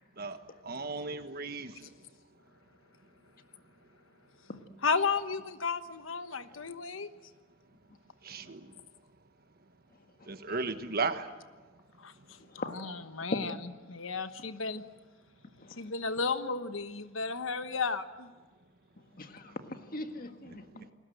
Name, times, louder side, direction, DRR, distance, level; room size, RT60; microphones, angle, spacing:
voice 1, 0.6-1.7 8.2-8.6 10.3-11.3, right 4 dB, 50° right, 9 dB, 1.4 m, -35 dB
voice 2, 4.8-7.1 12.0-12.4 12.6-14.8 15.8-18.3, left 4 dB, 80° left, 10 dB, 1.2 m, -33 dB
voice 3, 19.2-20.9, left 2 dB, 45° left, 6 dB, 1.8 m, -41 dB
29.0 x 20.5 x 7.9 m, 1.3 s
head